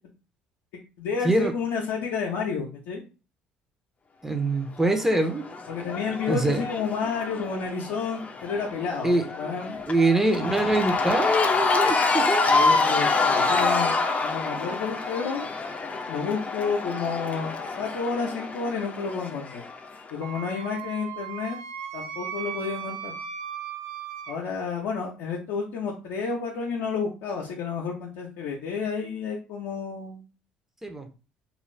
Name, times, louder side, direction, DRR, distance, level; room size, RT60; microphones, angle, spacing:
voice 1, 1.0-3.0 5.7-9.8 10.2-10.7 12.5-13.9 14.2-15.4 16.1-19.6 20.1-21.6 21.9-23.1 24.3-30.2, left 5 dB, 75° left, -2 dB, 0.6 m, -30 dB
voice 2, 4.2-5.5 6.3-6.6 9.0-9.2 9.9-12.5 30.8-31.1, right 2 dB, 10° right, 5 dB, 0.7 m, -24 dB
Cheering / Crowd, 4.8-20.1, left 3 dB, 35° left, 0.5 m, -27 dB
Wind instrument woodwind instrument, 20.2-24.4, right 8 dB, 85° right, 0.3 m, -37 dB
2.4 x 2.4 x 3.2 m, 0.34 s
hypercardioid pair, 65°, 4 cm